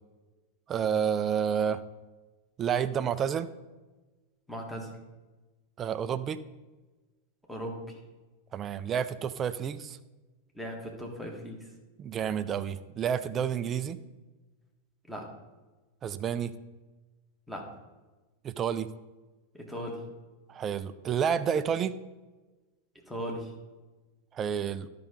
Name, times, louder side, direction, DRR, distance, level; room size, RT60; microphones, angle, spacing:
voice 1, 0.7-1.8 2.6-3.5 5.8-6.4 8.5-10.0 12.0-14.0 16.0-16.5 18.4-18.9 20.5-21.9 24.3-24.9, right 8 dB, 25° right, 13 dB, 0.4 m, -30 dB
voice 2, 4.5-4.9 7.5-7.8 10.6-11.6 15.1-15.2 17.5-17.6 19.5-20.0 23.1-23.5, equal, ahead, 0 dB, 1.8 m, -37 dB
12.0 x 5.6 x 3.9 m, 1.2 s
figure-of-eight pair, 90°, 0 cm